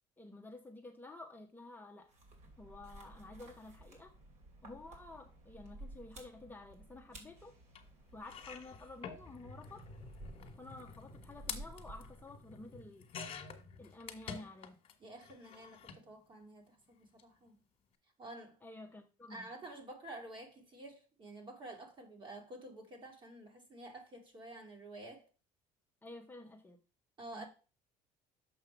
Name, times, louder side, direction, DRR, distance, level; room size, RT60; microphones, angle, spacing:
voice 1, 0.2-2.1 2.6-4.1 4.6-7.6 8.1-9.9 10.6-13.1 13.8-14.8 18.6-19.5 26.0-26.8 27.3-27.5, left 2 dB, 10° left, 0.9 m, -51 dB
sound 1, 2.1-12.5, right 1 dB, 55° right, 2.7 m, -55 dB
sound 2, 7.7-7.8 8.2-14.9 15.2-16.0 17.0-17.2 17.5-17.6, left 6 dB, 40° left, 1.7 m, -49 dB
voice 2, 15.0-17.6 18.2-18.6 19.3-25.3 27.2-27.5, right 1 dB, 35° right, 2.3 m, -50 dB
7.0 x 5.5 x 4.5 m
cardioid pair, 130°, 14 cm